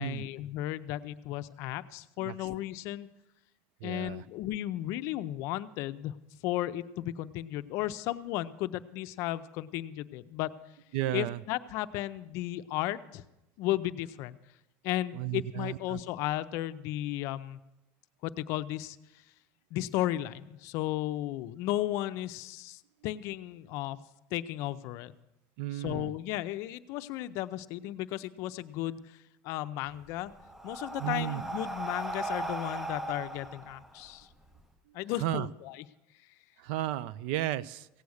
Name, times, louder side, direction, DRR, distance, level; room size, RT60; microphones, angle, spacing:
voice 1, 0.0-3.1 3.8-6.1 6.4-10.5 11.1-13.2 13.6-14.4 14.8-17.6 18.2-19.0 19.7-24.0 24.3-25.1 25.7-29.2 29.4-30.3 30.6-34.3 34.9-35.9, left 14 dB, 55° left, 12 dB, 0.5 m, -34 dB
voice 2, 3.8-4.2 10.9-11.4 15.1-16.0 25.6-26.1 31.0-31.4 35.2-35.5 36.6-37.9, right 14 dB, 70° right, 19 dB, 0.4 m, -33 dB
Breathing, 29.9-34.6, right 2 dB, 5° right, 0.4 m, -38 dB
16.5 x 8.3 x 6.4 m, 0.94 s
cardioid pair, 165°, 6 cm